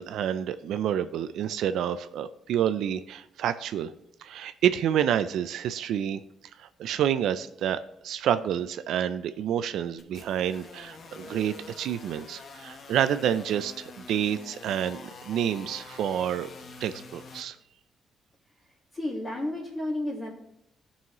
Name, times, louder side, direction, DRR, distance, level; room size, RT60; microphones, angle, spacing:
voice 1, 0.0-3.9 4.2-6.2 6.6-16.5 16.8-17.6, right 9 dB, 85° right, 11 dB, 0.4 m, -28 dB
sound 1, 10.0-17.4, left 3 dB, 50° left, 0.9 m, -46 dB
voice 2, 18.9-20.3, left 1 dB, 25° left, -5 dB, 1.7 m, -31 dB
15.5 x 5.5 x 3.0 m, 0.80 s
cardioid pair, 135°, 0 cm